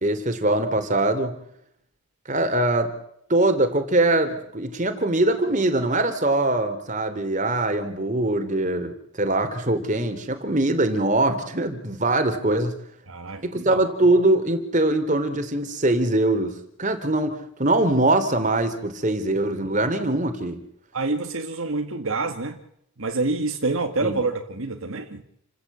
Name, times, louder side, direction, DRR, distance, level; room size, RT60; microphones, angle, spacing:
voice 1, 0.0-1.3 2.3-2.9 3.3-12.7 13.4-20.6 24.0-24.2, right 2 dB, 35° right, 7 dB, 3.0 m, -22 dB
voice 2, 13.1-13.9 20.9-22.6 23.0-25.2, right 3 dB, 65° right, 4 dB, 1.8 m, -27 dB
29.5 x 15.0 x 8.5 m, 0.73 s
head